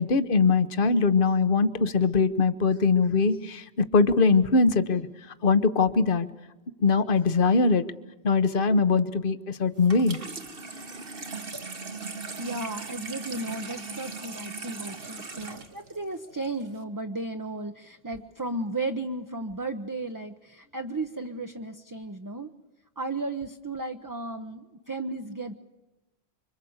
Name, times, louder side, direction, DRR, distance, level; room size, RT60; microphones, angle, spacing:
voice 1, 0.0-5.1 5.4-6.3 6.8-7.8 8.2-10.2, left 4 dB, 55° left, 12 dB, 1.3 m, -22 dB
Water tap faucet / Sink (filling or washing), 9.8-16.8, right 4 dB, 60° right, 1.9 m, -39 dB
voice 2, 12.4-22.5 23.0-25.5, right 2 dB, 20° right, 5 dB, 0.9 m, -34 dB
26.0 x 24.5 x 8.0 m, 1.0 s
omnidirectional pair, 1.1 m